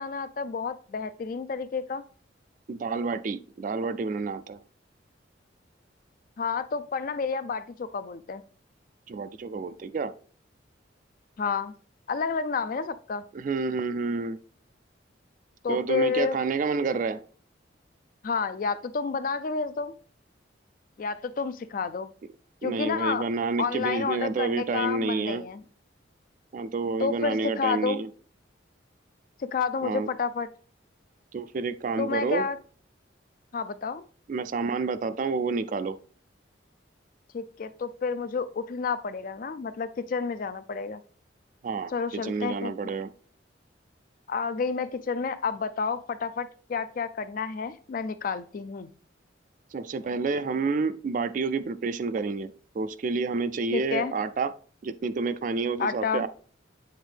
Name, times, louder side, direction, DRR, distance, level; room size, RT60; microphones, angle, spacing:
voice 1, 0.0-2.1 6.4-8.4 11.4-11.7 12.1-13.2 15.6-16.4 18.2-20.0 21.0-22.1 22.6-23.3 23.6-25.6 27.0-28.0 29.4-30.5 32.0-32.6 33.5-34.0 37.3-41.0 41.9-42.7 44.3-48.9 53.7-54.1 55.8-56.3, left 5 dB, 45° left, 0.4 m, -30 dB
voice 2, 2.7-4.6 9.1-10.1 13.3-14.4 15.7-17.2 22.6-25.4 26.5-28.1 29.8-30.1 31.3-32.5 34.3-36.0 41.6-43.1 49.7-54.5 54.8-56.3, right 4 dB, 45° right, 0.3 m, -29 dB
8.0 x 3.6 x 3.3 m
head